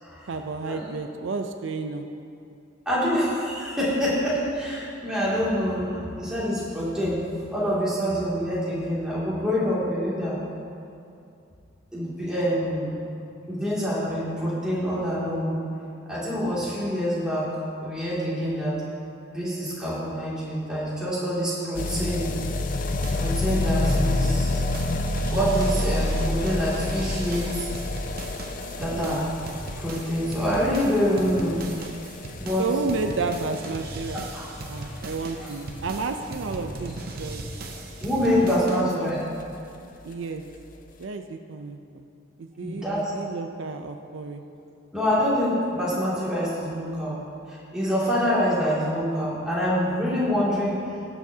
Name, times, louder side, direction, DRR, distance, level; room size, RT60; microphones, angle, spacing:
voice 1, 0.3-2.1 28.9-29.2 32.6-34.3 34.7-37.4 38.3-39.1 40.0-40.4 41.0-42.0 42.4-42.8 43.1-44.4, right 4 dB, 70° right, 6 dB, 0.5 m, -31 dB
voice 2, 2.9-7.2 7.5-10.4 11.9-13.0 13.5-15.6 16.1-18.8 19.3-22.3 23.2-24.6 25.3-27.7 28.7-29.3 29.7-31.6 32.4-32.7 34.3-34.4 34.8-34.9 35.4-35.5 38.0-39.2 42.6-43.1 44.9-47.2 47.5-50.8, equal, 5° right, -9 dB, 2.4 m, -26 dB
sound 1, 21.7-38.5 38.8-38.9 39.1-39.2 39.4-39.5 39.7-39.8 40.5-40.6, left 2 dB, 45° left, 0.5 m, -29 dB
sound 2, 23.0-24.4 24.7-39.0, right 2 dB, 50° right, 0.8 m, -38 dB
18.0 x 7.0 x 2.8 m, 2.6 s
head